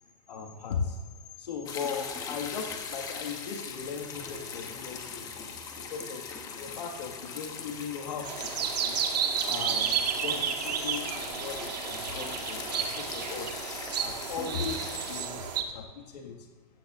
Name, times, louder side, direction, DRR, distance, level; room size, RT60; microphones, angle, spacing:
voice 1, 0.3-1.0 1.4-5.3 5.8-9.1 9.4-13.6 14.0-16.5, left 6 dB, 85° left, 1 dB, 1.8 m, -38 dB
sound 1, 1.7-15.2, left 5 dB, 15° left, 1.1 m, -40 dB
sound 2, 8.2-15.6, right 7 dB, 85° right, 1.7 m, -32 dB
16.0 x 14.5 x 2.5 m, 1.5 s
supercardioid pair, 165°, 20 cm